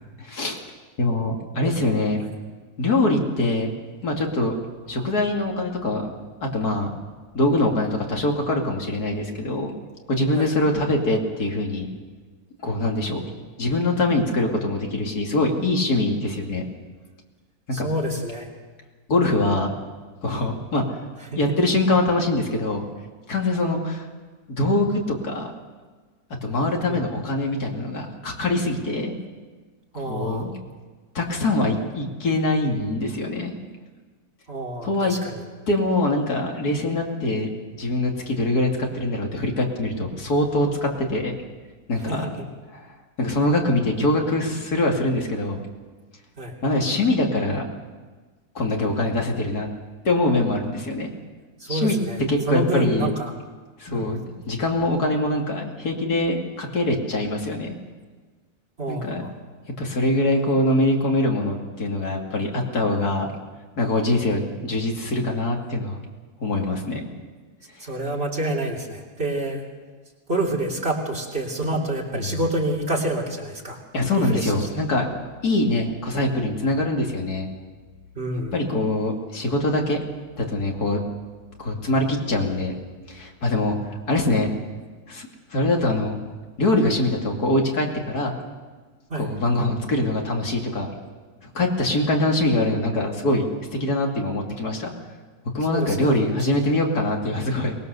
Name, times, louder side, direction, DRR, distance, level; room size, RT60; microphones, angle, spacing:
voice 1, 0.2-0.6 1.0-2.2 2.8-3.7 4.0-4.5 4.9-6.1 6.4-6.9 7.3-9.7 10.1-11.9 12.6-13.2 13.6-16.7 17.8-17.9 19.1-19.7 20.2-20.8 21.3-22.8 23.3-24.1 24.5-25.5 26.4-29.1 30.0-30.6 31.1-33.5 34.8-35.2 35.7-41.3 41.9-42.4 42.7-42.8 43.2-45.6 46.6-47.6 48.5-49.7 50.0-51.1 51.7-52.0 52.3-53.1 53.8-57.7 58.9-59.3 59.8-63.3 63.8-66.0 66.4-67.0 72.1-72.4 73.9-75.1 75.4-77.5 78.5-80.0 80.4-81.0 81.6-82.7 83.1-83.8 84.1-84.5 85.1-86.2 86.6-88.3 89.2-90.9 91.4-93.5 93.7-94.9 95.5-97.8, left 2 dB, 85° left, 1 dB, 3.0 m, -23 dB
voice 2, 17.7-18.5 21.3-21.4 26.9-27.0 29.9-30.4 34.5-35.4 42.1-42.3 46.4-46.5 51.6-52.2 52.5-53.3 53.9-54.1 58.8-59.3 67.8-69.6 70.3-73.8 74.2-74.5 78.2-78.5 89.1-89.3 95.7-96.4, right 1 dB, 40° right, -1 dB, 3.3 m, -27 dB
23.0 x 20.0 x 6.8 m, 1.4 s
omnidirectional pair, 1.6 m